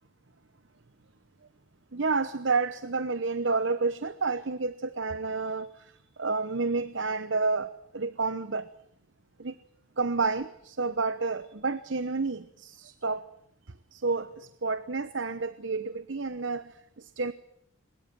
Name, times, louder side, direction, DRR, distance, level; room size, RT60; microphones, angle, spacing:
voice 1, 1.9-8.7 9.4-9.6 10.0-13.2 13.9-17.3, right 4 dB, 60° right, 14 dB, 1.0 m, -30 dB
22.5 x 21.0 x 9.2 m, 0.70 s
head